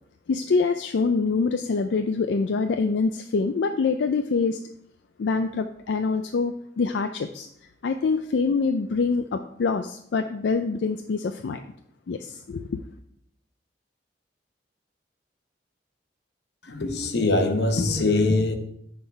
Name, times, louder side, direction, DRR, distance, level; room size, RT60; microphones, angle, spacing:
voice 1, 0.3-4.6 5.2-7.5 7.8-11.6 12.1-12.8, left 4 dB, 85° left, 7 dB, 0.4 m, -25 dB
voice 2, 16.6-18.6, left 2 dB, 70° left, 6 dB, 0.9 m, -22 dB
9.4 x 3.8 x 4.5 m, 0.73 s
head